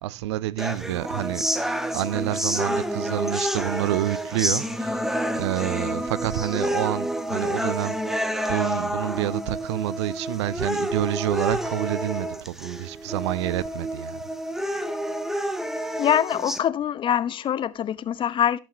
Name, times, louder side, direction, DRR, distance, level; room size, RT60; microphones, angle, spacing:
voice 1, 0.0-5.0 5.3-8.2 8.5-14.2, right 15 dB, 60° right, 0.5 m, -28 dB
sound 1, 0.6-16.6, equal, ahead, 1.2 m, -29 dB
voice 2, 16.0-18.6, left 9 dB, 30° left, 0.8 m, -24 dB
17.5 x 6.1 x 2.8 m
figure-of-eight pair, 80°, 16 cm